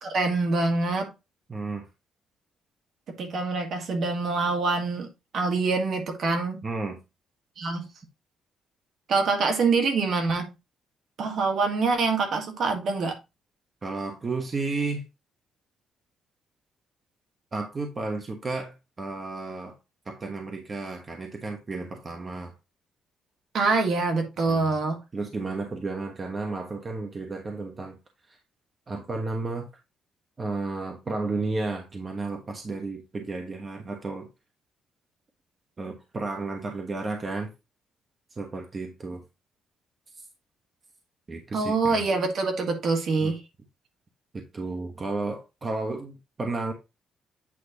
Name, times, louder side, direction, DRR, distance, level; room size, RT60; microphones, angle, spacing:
voice 1, 0.0-1.1 3.2-6.6 7.6-7.9 9.1-10.5 11.2-13.2 23.5-25.0 41.5-43.4, right 3 dB, 60° right, 1.8 m, -25 dB
voice 2, 1.5-1.9 6.6-7.0 13.8-15.0 17.5-19.8 20.0-22.5 24.5-24.8 25.1-28.0 28.3-28.4 28.9-29.7 30.4-34.3 35.8-37.5 38.3-39.2 41.3-42.0 43.2-43.4 44.3-46.7, right 3 dB, 30° right, 1.2 m, -32 dB
8.6 x 3.2 x 4.0 m
cardioid pair, 105°, 0 cm